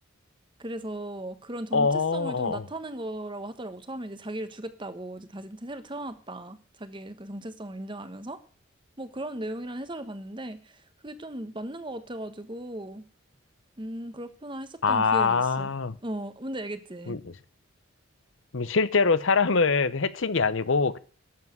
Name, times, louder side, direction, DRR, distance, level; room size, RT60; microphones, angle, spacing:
voice 1, 0.6-8.4 9.0-13.0 13.8-15.7 16.0-17.2, right 1 dB, 25° right, 1.2 m, -37 dB
voice 2, 1.7-2.7 14.8-16.0 17.1-17.3 18.5-21.0, left 4 dB, 65° left, 0.8 m, -24 dB
11.5 x 7.4 x 9.4 m
head